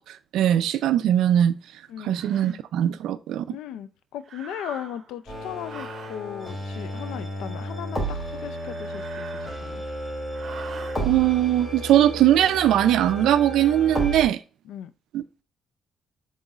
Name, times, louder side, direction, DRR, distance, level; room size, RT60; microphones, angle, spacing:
voice 1, 0.3-1.6 2.0-3.6 11.0-14.4 15.1-15.4, right 11 dB, 80° right, 0.3 m, -20 dB
sound 1, 1.2-1.3 2.1-2.6 4.2-5.2 5.6-6.2 8.4-9.9 10.3-11.0, right 6 dB, 55° right, 0.8 m, -43 dB
voice 2, 1.9-2.6 3.5-9.8 14.6-14.9, left 10 dB, 90° left, 0.3 m, -37 dB
sound 2, 5.3-14.2, right 1 dB, 20° left, 2.6 m, -32 dB
5.4 x 3.9 x 2.4 m
cardioid pair, 90°, 0 cm